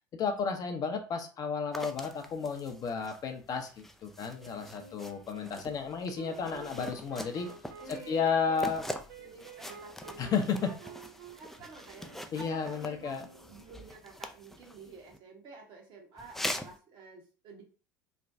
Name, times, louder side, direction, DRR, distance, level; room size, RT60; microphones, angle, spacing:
voice 1, 0.1-7.5 7.9-8.8 10.2-10.7 12.3-13.3, left 5 dB, 35° left, 5 dB, 0.6 m, -32 dB
sound 1, 1.7-15.2 16.2-16.8, left 1 dB, 5° left, 0.3 m, -44 dB
Wind instrument woodwind instrument, 4.4-13.8, right 7 dB, 70° right, 0.5 m, -51 dB
voice 2, 7.8-8.6 9.2-10.9 11.3-17.6, right 3 dB, 50° right, 1 dB, 1.1 m, -50 dB
3.2 x 2.2 x 2.6 m, 0.35 s
hypercardioid pair, 75°, 10 cm